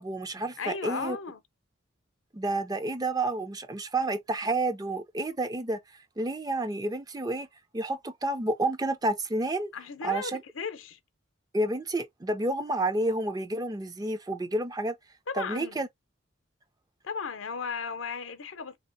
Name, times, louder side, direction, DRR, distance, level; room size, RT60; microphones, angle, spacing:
voice 1, 0.0-1.2 2.3-5.8 6.2-7.5 7.7-9.7 10.0-10.4 11.5-15.0 15.3-15.9, right 2 dB, 20° right, 0.4 m, -30 dB
voice 2, 0.6-1.4 9.7-11.0 15.3-15.8 17.0-18.8, left 5 dB, 85° left, 0.7 m, -35 dB
3.8 x 2.8 x 2.6 m
head